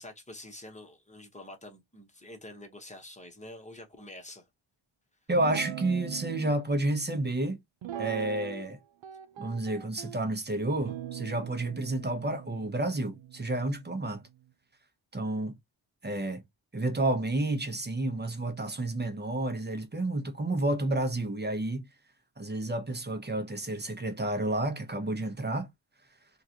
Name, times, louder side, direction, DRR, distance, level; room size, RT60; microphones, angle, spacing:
voice 1, 0.0-4.4, left 1 dB, 15° left, 1.1 m, -47 dB
voice 2, 5.3-7.6 8.0-8.8 9.4-14.2 15.1-15.5 16.0-16.4 16.7-21.9 22.4-25.7, right 2 dB, 20° right, 0.9 m, -30 dB
Guitar, 5.3-6.5 7.8-8.7 9.0-10.2 10.8-14.3, right 10 dB, 70° right, 0.6 m, -41 dB
3.8 x 2.5 x 2.8 m
wide cardioid pair, 125°, 48 cm